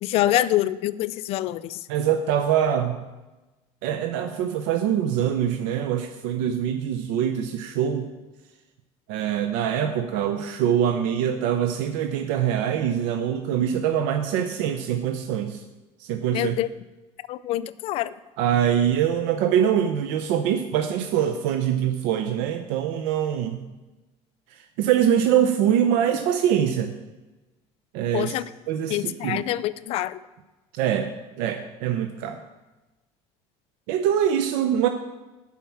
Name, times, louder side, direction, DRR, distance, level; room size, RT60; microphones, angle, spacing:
voice 1, 0.0-1.9 16.3-16.7 17.3-18.1 28.1-28.4 28.9-30.2, left 15 dB, 55° left, 16 dB, 0.4 m, -25 dB
voice 2, 1.9-3.0 3.8-8.1 9.1-15.6 16.0-16.6 18.4-23.6 24.5-26.9 27.9-28.3 28.7-29.4 30.7-31.1 31.4-32.4 33.9-34.9, right 9 dB, 85° right, 7 dB, 0.6 m, -24 dB
7.2 x 5.8 x 7.3 m, 1.1 s
cardioid pair, 145°, 12 cm